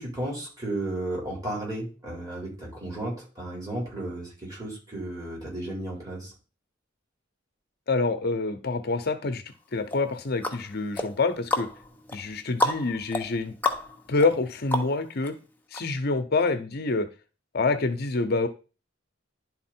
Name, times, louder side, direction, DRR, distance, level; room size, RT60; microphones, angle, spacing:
voice 1, 0.0-6.3, right 1 dB, 20° right, -4 dB, 4.3 m, -34 dB
voice 2, 7.9-9.4 9.7-11.7 12.1-13.5 14.1-15.3 15.7-17.1 17.5-18.5, left 3 dB, 55° left, 9 dB, 0.7 m, -26 dB
sound 1, 9.9-15.3 15.7-15.8, left 2 dB, 10° left, 0.9 m, -31 dB
11.0 x 4.1 x 4.4 m, 0.33 s
head